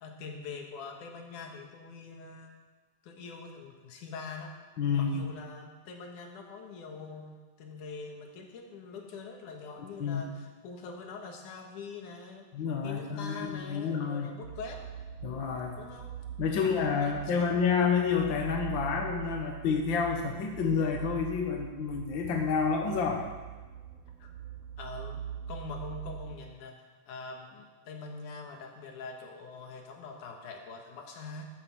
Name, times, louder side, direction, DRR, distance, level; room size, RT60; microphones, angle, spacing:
voice 1, 0.0-2.5 3.0-4.5 4.9-12.5 12.8-14.9 15.8-16.1 16.5-17.8 24.2-24.3 24.8-25.2 25.5-26.8 27.1-31.5, left 4 dB, 75° left, 2 dB, 3.0 m, -44 dB
voice 2, 4.8-5.3 10.0-10.2 12.5-14.3 15.2-15.8 16.4-23.2, left 6 dB, 55° left, 2 dB, 1.4 m, -29 dB
sound 1, 14.4-26.3, right 9 dB, 90° right, 1.3 m, -42 dB
12.5 x 7.9 x 7.5 m, 1.3 s
omnidirectional pair, 3.6 m